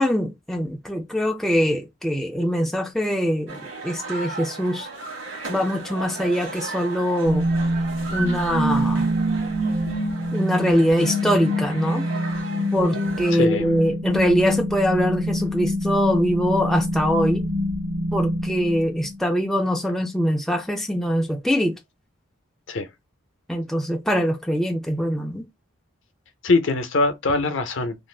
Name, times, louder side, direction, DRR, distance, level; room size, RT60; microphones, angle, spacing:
voice 1, 0.0-4.9 5.5-7.4 8.1-9.1 10.3-12.1 12.7-17.4 18.1-21.7 23.5-25.4, equal, ahead, 0.3 m, -23 dB
sound 1, 3.5-13.3, right 3 dB, 65° right, 1.1 m, -36 dB
sound 2, 7.2-19.2, equal, 90° right, 0.9 m, -25 dB
voice 2, 13.3-13.7 22.7-22.9 26.4-27.9, left 3 dB, 65° left, 0.6 m, -22 dB
2.5 x 2.4 x 3.2 m
head